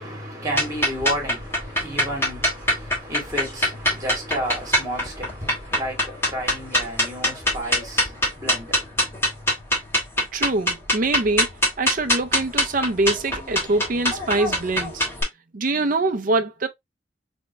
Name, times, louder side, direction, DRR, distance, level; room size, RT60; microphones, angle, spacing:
voice 1, 0.0-9.3 9.6-9.7, equal, 15° right, 2.3 m, -32 dB
sound 1, 0.5-15.2, equal, 15° left, 2.3 m, -24 dB
voice 2, 10.3-11.5 11.8-15.0 15.5-16.7, right 2 dB, 45° right, 0.6 m, -24 dB
3.7 x 3.5 x 2.9 m
head